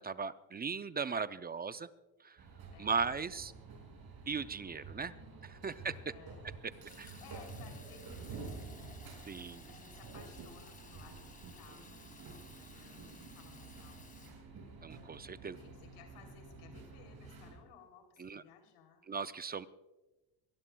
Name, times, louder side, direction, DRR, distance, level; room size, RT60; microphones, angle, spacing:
voice 1, 0.0-1.9 2.2-2.5 2.8-3.5 4.3-5.1 5.5-6.0 7.0-7.1 9.3-9.7 14.8-15.6 18.2-18.4 19.1-19.7, right 5 dB, 20° right, 13 dB, 0.4 m, -38 dB
sound 1, 2.4-17.6, right 4 dB, 45° right, 5.6 m, -50 dB
voice 2, 2.7-3.1 5.0-5.8 6.1-6.4 6.9-9.1 9.7-14.4 15.5-19.0, left 7 dB, 85° left, 5 dB, 3.3 m, -59 dB
Fill (with liquid), 6.9-14.3, left 3 dB, 15° left, 2.0 m, -57 dB
23.5 x 19.0 x 2.3 m, 1.1 s
cardioid pair, 105°, 50 cm